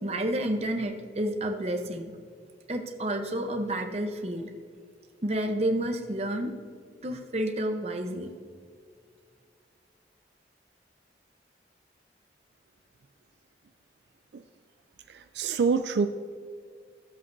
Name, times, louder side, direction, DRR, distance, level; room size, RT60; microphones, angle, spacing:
voice 1, 0.0-2.1 2.7-4.5 5.2-6.5 7.0-8.3, right 1 dB, 35° right, 4 dB, 0.8 m, -30 dB
voice 2, 15.1-16.1, right 5 dB, 75° right, 8 dB, 0.4 m, -26 dB
15.0 x 7.5 x 2.7 m, 2.1 s
head